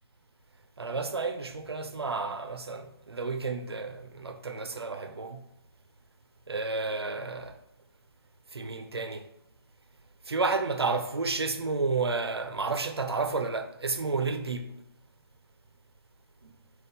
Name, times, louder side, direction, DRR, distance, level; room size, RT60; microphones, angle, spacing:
voice 1, 0.8-5.4 6.5-7.6 8.5-9.3 10.3-14.8 16.4-16.5, right 3 dB, 90° right, 0.4 m, -31 dB
3.5 x 2.2 x 4.0 m
figure-of-eight pair, 140°, 13 cm